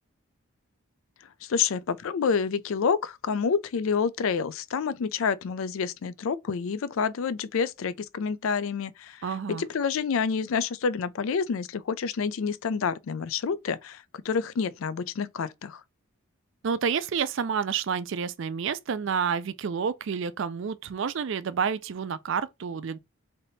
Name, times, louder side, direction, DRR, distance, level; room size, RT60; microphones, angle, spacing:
voice 1, 1.4-15.8, left 6 dB, 70° left, 0.4 m, -28 dB
voice 2, 9.2-9.6 16.6-23.0, right 6 dB, 60° right, 0.4 m, -29 dB
3.4 x 2.7 x 4.0 m
head